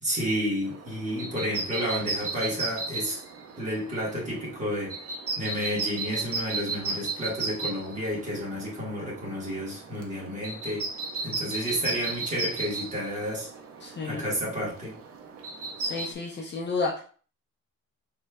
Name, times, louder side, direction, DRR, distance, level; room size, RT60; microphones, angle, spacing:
voice 1, 0.0-3.2 3.6-5.0 5.4-10.9 11.2-13.5 14.0-14.9, equal, 25° right, -5 dB, 1.4 m, -31 dB
sound 1, 0.6-16.1, right 3 dB, 50° right, 0.6 m, -35 dB
voice 2, 13.8-14.2 15.8-17.0, left 4 dB, 35° left, -1 dB, 0.6 m, -31 dB
4.1 x 3.1 x 2.2 m, 0.42 s
cardioid pair, 175°, 31 cm